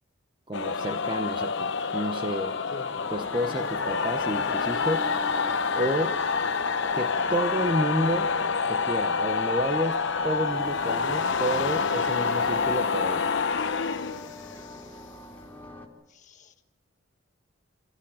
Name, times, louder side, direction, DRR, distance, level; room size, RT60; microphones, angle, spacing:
sound 1, 0.5-14.7, left 5 dB, 60° left, 0.9 m, -27 dB
voice 1, 0.5-2.6 3.1-5.1 5.7-6.2 6.9-8.3 8.7-13.3, right 1 dB, 20° right, 6 dB, 1.0 m, -30 dB
sound 2, 2.9-15.9, left 1 dB, 10° left, 4.0 m, -44 dB
voice 2, 3.5-3.9 4.3-4.7 5.9-6.0 16.1-16.5, left 1 dB, 35° left, 6 dB, 1.7 m, -45 dB
27.0 x 17.5 x 8.7 m, 0.97 s
head